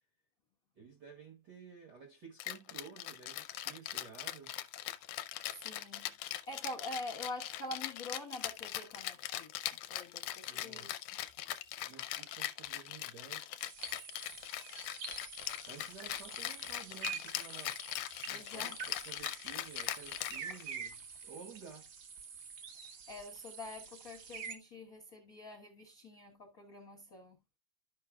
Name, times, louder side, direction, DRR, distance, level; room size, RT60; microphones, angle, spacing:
voice 1, 0.7-4.6 10.5-11.0 11.8-13.7 15.7-18.8 19.0-21.9, right 6 dB, 55° right, 1.2 m, -53 dB
Rattle (instrument), 2.4-20.9, left 14 dB, 80° left, 2.1 m, -41 dB
voice 2, 5.5-11.0 18.3-18.8 22.7-27.4, left 1 dB, 60° left, 0.9 m, -46 dB
sound 1, 13.6-24.6, right 6 dB, 75° right, 0.9 m, -47 dB
13.5 x 5.3 x 2.3 m
omnidirectional pair, 3.7 m